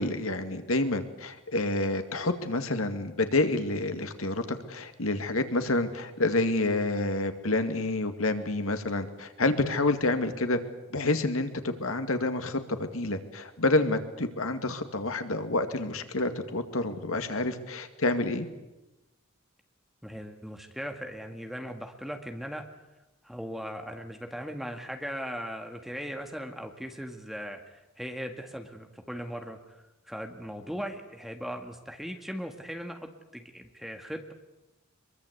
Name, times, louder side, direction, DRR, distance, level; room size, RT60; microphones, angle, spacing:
voice 1, 0.0-10.6 10.9-18.5, left 2 dB, 85° left, 8 dB, 2.2 m, -28 dB
voice 2, 20.0-22.6 23.2-34.3, equal, ahead, 4 dB, 1.8 m, -38 dB
24.5 x 22.5 x 8.3 m, 1.0 s
head